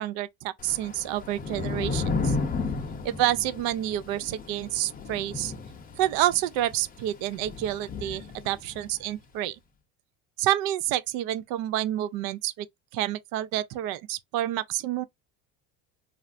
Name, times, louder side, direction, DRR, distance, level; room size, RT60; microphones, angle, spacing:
voice 1, 0.0-2.4 3.0-5.5 6.0-9.6 10.4-12.7 12.9-15.0, right 13 dB, 65° right, 0.5 m, -28 dB
Thunder / Rain, 0.6-9.0, left 4 dB, 20° left, 0.7 m, -33 dB
3.1 x 2.5 x 2.5 m
supercardioid pair, 115°, 38 cm